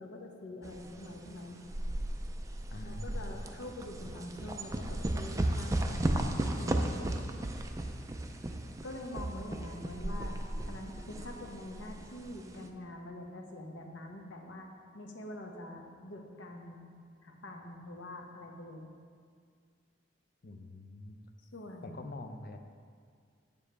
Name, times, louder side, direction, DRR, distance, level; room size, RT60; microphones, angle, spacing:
voice 1, 0.0-1.6 2.8-7.1 8.8-10.4 10.7-14.7 14.9-16.9 17.2-18.9 21.5-22.0, left 1 dB, 75° left, 2 dB, 0.9 m, -45 dB
sound 1, 0.6-12.7, right 1 dB, 15° right, 0.4 m, -35 dB
voice 2, 2.7-3.5 20.4-21.2 21.8-22.6, left 2 dB, 50° left, 6 dB, 0.5 m, -45 dB
8.3 x 7.0 x 3.3 m, 2.1 s
head